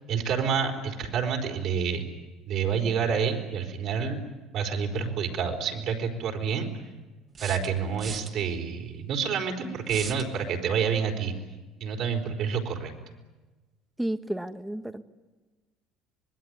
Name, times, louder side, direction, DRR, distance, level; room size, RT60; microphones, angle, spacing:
voice 1, 0.1-2.1 2.5-4.2 4.5-6.7 7.4-11.3 11.8-12.9, right 6 dB, 60° right, 2 dB, 4.5 m, -28 dB
sound 1, 5.3-5.4 7.3-8.3 9.9-10.3, right 5 dB, 40° right, 2.7 m, -38 dB
voice 2, 14.0-15.0, right 1 dB, 5° right, 10 dB, 1.5 m, -32 dB
25.5 x 20.5 x 9.6 m, 1.2 s
hypercardioid pair, 75°, 0 cm